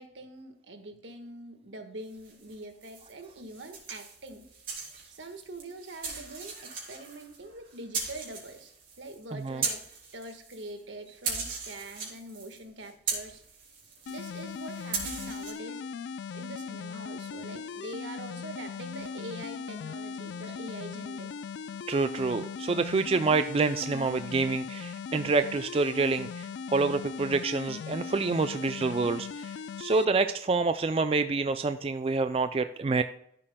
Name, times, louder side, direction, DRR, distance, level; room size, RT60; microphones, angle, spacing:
voice 1, 0.0-4.4 5.1-9.8 10.1-13.4 14.1-15.8 16.3-21.3, right 1 dB, 75° right, 6 dB, 1.5 m, -44 dB
sound 1, 2.2-10.8 11.1-15.5, right 5 dB, 45° right, 3.3 m, -38 dB
voice 2, 9.3-9.6 21.9-33.0, right 4 dB, 30° right, 9 dB, 0.3 m, -27 dB
sound 2, 14.1-30.1, left 6 dB, 65° left, 0.3 m, -39 dB
14.0 x 7.5 x 2.2 m, 0.72 s
head